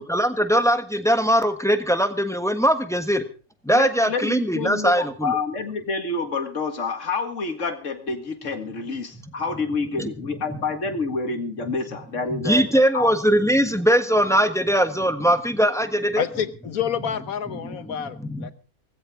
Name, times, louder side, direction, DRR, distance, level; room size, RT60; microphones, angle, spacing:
voice 1, 0.0-3.2 3.6-5.4 10.0-10.1 12.3-16.2 17.6-18.5, equal, ahead, 1.2 m, -21 dB
voice 2, 3.7-13.1, left 4 dB, 60° left, 2.3 m, -28 dB
voice 3, 16.2-18.5, left 8 dB, 75° left, 1.5 m, -28 dB
19.0 x 15.5 x 3.8 m
omnidirectional pair, 1.5 m